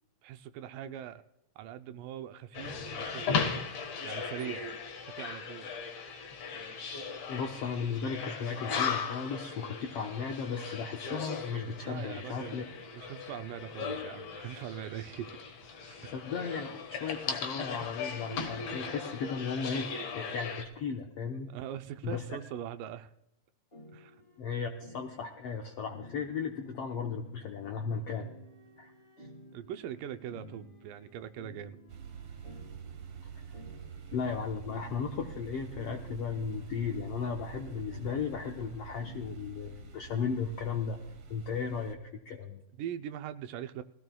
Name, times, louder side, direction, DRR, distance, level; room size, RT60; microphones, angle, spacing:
voice 1, 0.2-1.2 1.6-4.7 5.2-5.7 11.9-12.7 12.9-15.5 15.8-16.1 21.5-23.1 23.9-24.2 29.5-31.8 42.8-43.8, right 10 dB, 80° right, 10 dB, 2.2 m, -42 dB
sound 1, 2.5-20.6, left 5 dB, 55° left, 2.1 m, -37 dB
voice 2, 7.2-12.6 16.1-19.9 20.1-21.5 22.0-22.2 24.4-28.3 28.8-28.9 34.1-41.0 41.3-42.0 42.2-42.6, left 6 dB, 80° left, 2 dB, 1.4 m, -35 dB
sound 2, 23.7-41.1, left 1 dB, 25° left, 1.3 m, -54 dB
sound 3, 31.9-42.0, right 7 dB, 60° right, 1.7 m, -46 dB
21.0 x 15.5 x 2.3 m, 0.89 s
omnidirectional pair, 3.9 m